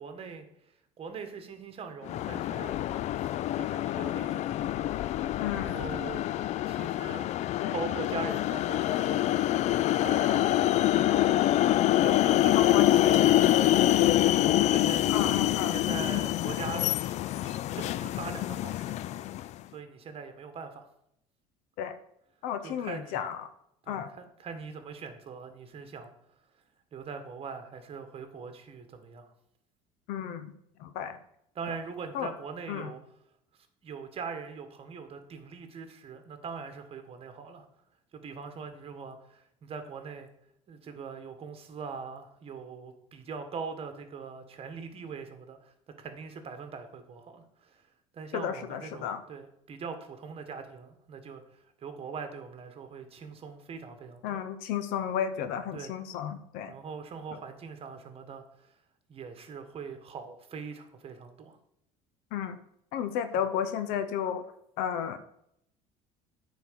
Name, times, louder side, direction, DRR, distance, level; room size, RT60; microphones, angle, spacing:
voice 1, 0.0-2.9 3.1-4.5 5.5-6.2 6.7-7.3 7.7-9.4 10.0-11.4 11.9-14.4 14.7-15.0 15.6-17.1 17.4-19.2 19.7-20.9 22.6-23.3 23.8-26.1 26.9-29.3 31.5-33.0 33.8-37.7 38.1-40.3 40.7-47.9 48.1-54.4 55.7-55.9 56.7-58.7 59.1-61.6 63.4-63.5, right 5 dB, 40° right, 7 dB, 1.5 m, -42 dB
sound 1, 2.0-19.5, left 14 dB, 50° left, 0.4 m, -26 dB
voice 2, 5.4-5.8 7.6-7.7 12.5-13.1 15.1-15.7 21.8-21.9 22.4-23.5 23.9-24.1 30.1-30.5 30.8-31.2 32.1-32.3 32.7-32.9 48.3-49.2 54.2-56.7 62.3-62.6 62.9-64.4 64.8-65.2, left 9 dB, 75° left, 11 dB, 0.7 m, -33 dB
9.3 x 4.2 x 6.7 m, 0.75 s
supercardioid pair, 105°, 15 cm